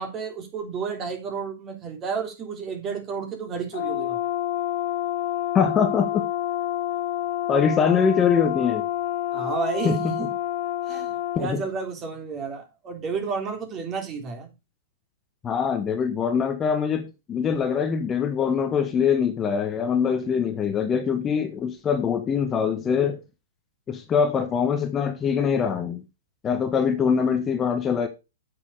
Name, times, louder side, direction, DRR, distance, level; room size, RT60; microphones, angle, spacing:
voice 1, 0.0-4.2 9.3-10.3 10.9-14.5, right 5 dB, 30° right, 3.4 m, -31 dB
Brass instrument, 3.7-11.5, left 13 dB, 60° left, 1.5 m, -28 dB
voice 2, 5.5-6.3 7.5-8.8 9.8-10.2 11.3-11.6 15.4-23.2 23.9-26.0 26.4-28.1, left 6 dB, 20° left, 1.3 m, -23 dB
8.6 x 6.9 x 4.9 m
hypercardioid pair, 115°, 0 cm